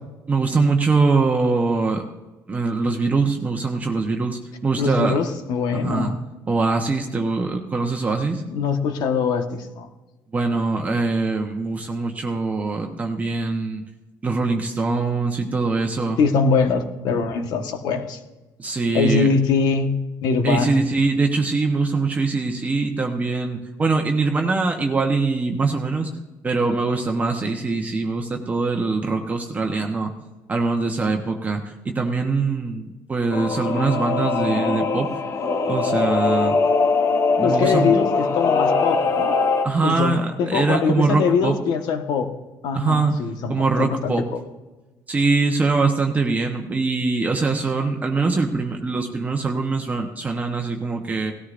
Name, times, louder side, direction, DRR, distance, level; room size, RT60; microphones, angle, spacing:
voice 1, 0.3-2.1 2.5-5.2 5.8-6.1 6.5-8.4 10.3-13.8 14.2-16.2 18.6-19.3 20.4-26.1 26.4-30.1 30.5-35.1 35.7-36.6 37.4-38.0 39.6-41.5 42.7-43.1 43.5-44.2 45.1-51.3, right 3 dB, 20° right, 2 dB, 1.0 m, -23 dB
voice 2, 4.8-6.2 8.5-9.9 16.2-18.2 18.9-19.9 20.2-20.8 37.4-39.3 39.8-42.3 42.6-44.1, left 5 dB, 75° left, 6 dB, 1.3 m, -22 dB
Singing / Musical instrument, 33.3-39.7, left 4 dB, 45° left, 0.9 m, -21 dB
18.0 x 13.0 x 2.6 m, 1.1 s
cardioid pair, 140°, 7 cm